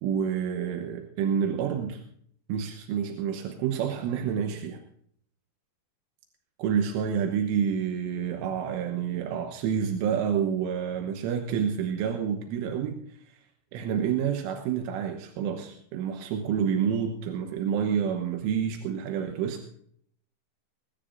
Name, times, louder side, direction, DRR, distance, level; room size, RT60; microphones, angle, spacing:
voice 1, 0.0-2.0 2.5-4.8 6.6-13.0 13.3-13.4 13.7-19.7, right 7 dB, 85° right, 5 dB, 3.6 m, -28 dB
20.5 x 17.0 x 2.6 m, 0.64 s
omnidirectional pair, 5.6 m